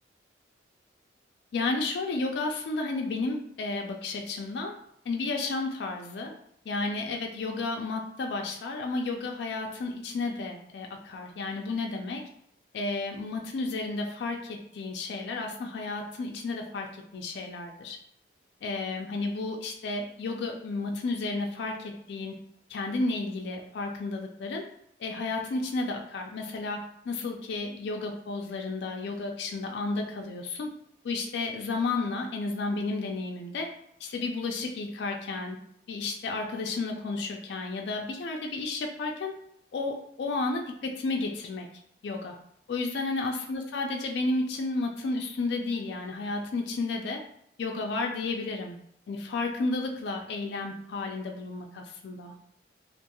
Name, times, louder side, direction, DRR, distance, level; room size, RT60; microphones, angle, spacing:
voice 1, 1.5-4.7 5.1-6.3 6.7-12.2 12.7-18.0 18.6-22.4 22.7-24.6 25.0-30.7 31.0-33.7 34.0-35.6 35.9-39.3 39.7-41.7 42.0-42.4 42.7-47.2 47.6-48.8 49.1-52.3, left 3 dB, 65° left, 2 dB, 0.3 m, -32 dB
2.4 x 2.2 x 2.9 m, 0.70 s
head